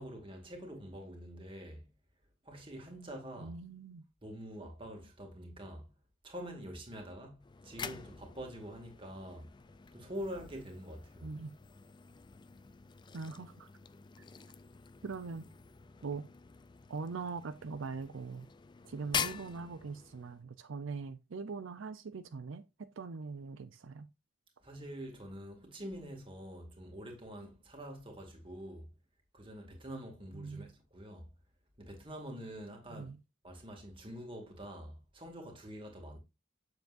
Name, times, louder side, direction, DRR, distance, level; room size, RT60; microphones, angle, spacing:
voice 1, 0.0-1.9 2.4-3.6 4.2-5.9 6.2-9.5 9.9-11.3 24.6-28.9 29.3-31.3 31.8-33.2 33.4-36.2, equal, 25° right, 2.1 m, -46 dB
voice 2, 3.4-4.0 11.2-11.5 13.1-13.7 15.0-15.4 16.0-16.3 16.9-18.5 18.8-22.6 23.0-24.1 30.3-30.7 32.9-33.2, right 4 dB, 80° right, 0.5 m, -42 dB
sound 1, 7.4-20.4, left 7 dB, 25° left, 0.3 m, -45 dB
7.9 x 6.9 x 2.5 m
head